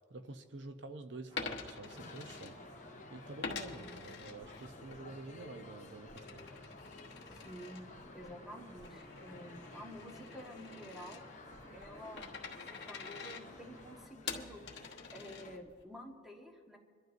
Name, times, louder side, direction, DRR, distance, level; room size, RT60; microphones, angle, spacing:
voice 1, 0.1-2.6 3.1-6.5, right 2 dB, 65° right, 7 dB, 0.7 m, -48 dB
Coin (dropping), 1.3-3.0 3.4-5.0 5.4-15.8, left 5 dB, 60° left, 1.1 m, -47 dB
sound 1, 1.3-14.1, equal, 30° right, 2.3 m, -57 dB
sound 2, 1.8-15.6, left 3 dB, 40° left, 0.7 m, -55 dB
voice 2, 3.7-4.0 7.3-7.8 8.1-11.2 11.7-16.8, equal, ahead, 0 dB, 1.2 m, -50 dB
26.5 x 12.0 x 2.6 m, 2.1 s
head